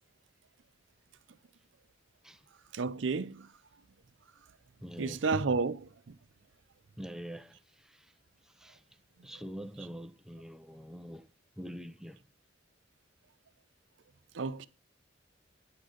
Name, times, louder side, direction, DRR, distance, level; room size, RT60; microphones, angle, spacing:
voice 1, 2.7-3.5 5.0-6.2 14.3-14.7, right 4 dB, 75° right, 0.6 m, -31 dB
voice 2, 4.8-5.2 7.0-8.1 8.4-11.3 11.6-12.2, equal, 5° right, 0.5 m, -45 dB
9.6 x 3.8 x 6.4 m
head